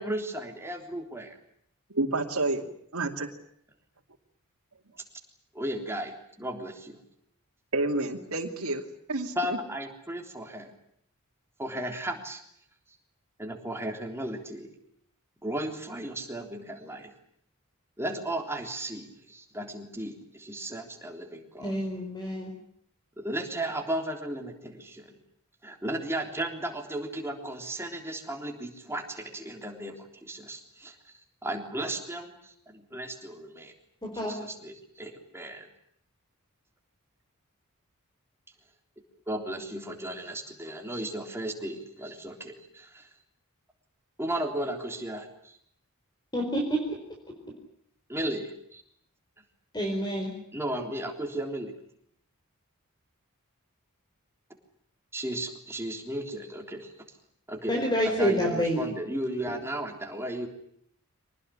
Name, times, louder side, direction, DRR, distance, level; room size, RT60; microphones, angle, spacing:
voice 1, 0.0-1.4 5.5-7.0 9.4-10.7 11.6-12.4 13.4-14.7 15.4-17.1 18.0-21.8 23.2-25.2 25.6-30.9 31.4-33.7 34.1-35.7 39.3-43.1 44.2-45.6 48.1-48.8 50.5-51.7 55.1-56.9 57.5-60.5, right 1 dB, 10° right, 3 dB, 3.6 m, -35 dB
voice 2, 1.9-2.7 2.9-3.3 7.7-8.8 9.1-9.6, right 2 dB, 80° right, 1 dB, 2.7 m, -29 dB
voice 3, 21.6-22.5 34.0-34.3 46.3-47.0 49.7-50.3 57.7-58.8, equal, 20° left, 1 dB, 4.5 m, -28 dB
25.0 x 19.5 x 10.0 m, 0.69 s
head